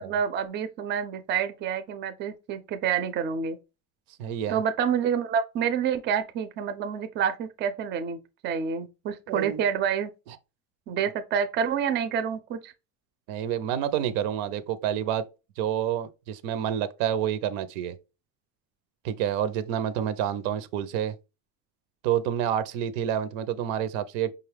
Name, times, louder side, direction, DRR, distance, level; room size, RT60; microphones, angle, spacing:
voice 1, 0.0-3.6 4.5-10.1 10.9-12.7, right 7 dB, 35° right, 0.4 m, -28 dB
voice 2, 4.2-4.6 9.3-9.6 10.3-10.4 13.3-15.3 15.6-18.0 19.0-21.2 22.0-24.3, right 10 dB, 85° right, 0.6 m, -28 dB
5.1 x 2.3 x 3.2 m
cardioid pair, 150°, 33 cm